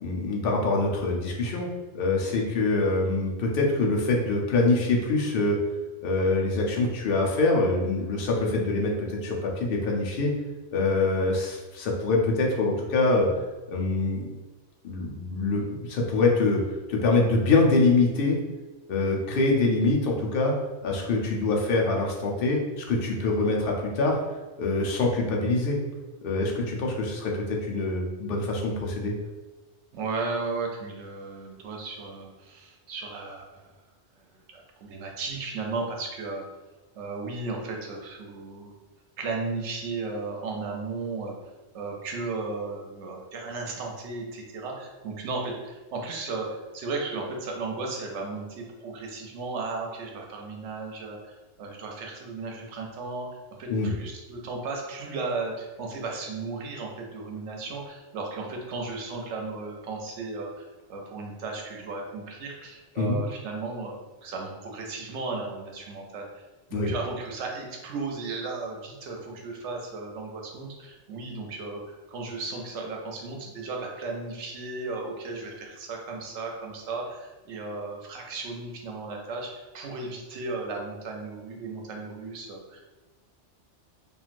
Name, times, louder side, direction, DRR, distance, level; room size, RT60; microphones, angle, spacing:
voice 1, 0.0-1.7 1.9-5.6 6.0-10.3 10.7-13.3 13.7-14.2 14.8-16.6 16.9-18.4 18.9-20.5 20.8-24.2 24.6-25.8 26.2-29.1 53.7-53.9 63.0-63.2 66.7-66.9, left 3 dB, 60° left, -1 dB, 0.7 m, -24 dB
voice 2, 29.9-33.7 34.5-36.5 36.9-38.7 39.2-41.3 41.7-51.3 51.6-53.3 53.6-60.5 60.9-66.3 66.7-71.8 72.1-82.8, right 3 dB, 75° right, 1 dB, 0.9 m, -35 dB
3.0 x 2.5 x 2.5 m, 1.2 s
omnidirectional pair, 1.2 m